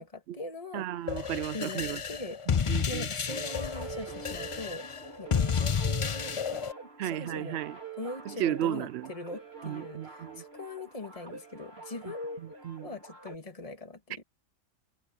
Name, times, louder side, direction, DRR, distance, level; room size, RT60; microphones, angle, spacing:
voice 1, 0.0-1.2 1.5-2.4 2.9-4.9 5.2-6.7 7.0-7.6 8.0-12.6 12.8-14.2, left 2 dB, 25° left, 2.2 m, -41 dB
voice 2, 0.7-2.0 2.5-3.1 7.0-7.8 8.4-9.1 9.6-10.4 12.0-12.9, right 12 dB, 65° right, 0.7 m, -34 dB
sound 1, 1.1-6.7, left 7 dB, 55° left, 0.3 m, -31 dB
sound 2, 3.3-13.4, right 5 dB, 50° right, 4.0 m, -45 dB
omnidirectional pair, 1.4 m